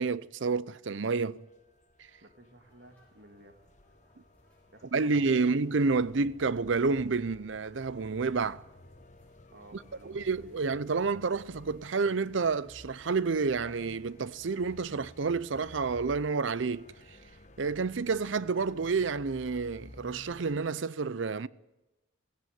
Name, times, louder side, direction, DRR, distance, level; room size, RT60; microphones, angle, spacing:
voice 1, 0.0-1.5 4.9-8.6 9.7-16.9 17.6-21.5, right 4 dB, 80° right, 0.6 m, -29 dB
sound 1, 1.2-20.7, left 1 dB, 40° left, 1.2 m, -55 dB
voice 2, 2.2-3.6 4.7-5.5 9.5-10.7, right 1 dB, 60° right, 2.1 m, -55 dB
sound 2, 2.6-16.4, left 1 dB, 5° left, 5.7 m, -64 dB
16.5 x 16.5 x 9.3 m
head